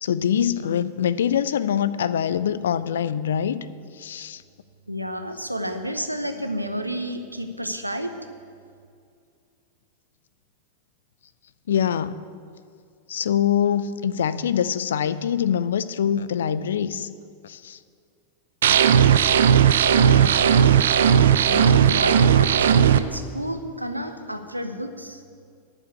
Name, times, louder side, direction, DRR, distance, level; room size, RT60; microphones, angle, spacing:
voice 1, 0.0-3.7 4.0-4.4 11.7-12.2 13.1-17.1 17.4-17.8 18.7-18.8 19.8-20.0 21.4-21.8, left 9 dB, 65° left, 15 dB, 0.4 m, -24 dB
voice 2, 4.9-8.1 19.9-20.6 21.5-25.2, equal, 85° right, 8 dB, 0.8 m, -31 dB
sound 1, 18.6-23.0, right 8 dB, 60° right, 0.4 m, -16 dB
10.5 x 7.1 x 8.4 m, 2.3 s
figure-of-eight pair, 90°, 0 cm